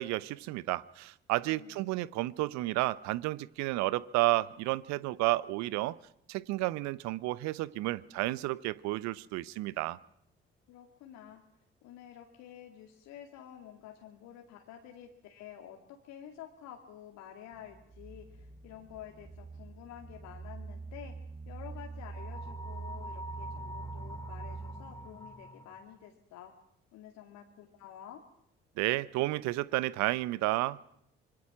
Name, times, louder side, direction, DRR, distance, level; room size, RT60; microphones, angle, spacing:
voice 1, 0.0-6.0 6.3-10.0 28.8-30.8, right 18 dB, 65° right, 20 dB, 0.9 m, -31 dB
voice 2, 1.4-1.9 10.7-11.4 11.8-21.1 21.5-26.5 26.9-28.2, left 10 dB, 65° left, 3 dB, 2.3 m, -50 dB
sound 1, 17.5-25.4, right 4 dB, 15° right, 1.2 m, -44 dB
sound 2, 22.1-26.0, left 1 dB, 10° left, 3.9 m, -46 dB
25.5 x 23.0 x 6.1 m, 0.75 s
figure-of-eight pair, 45°, 30 cm